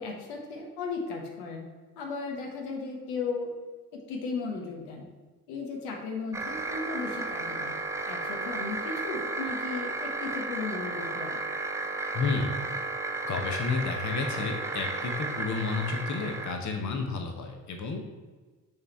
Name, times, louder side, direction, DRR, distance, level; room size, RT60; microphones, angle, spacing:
voice 1, 0.0-1.7 2.0-3.5 3.9-5.1 5.5-7.8 8.1-11.4, left 4 dB, 70° left, 1 dB, 1.2 m, -35 dB
sound 1, 6.3-16.5, right 3 dB, 5° right, 0.3 m, -33 dB
voice 2, 12.1-12.6 13.2-18.1, left 4 dB, 35° left, 4 dB, 1.0 m, -31 dB
6.7 x 3.4 x 4.3 m, 1.3 s
hypercardioid pair, 50°, 47 cm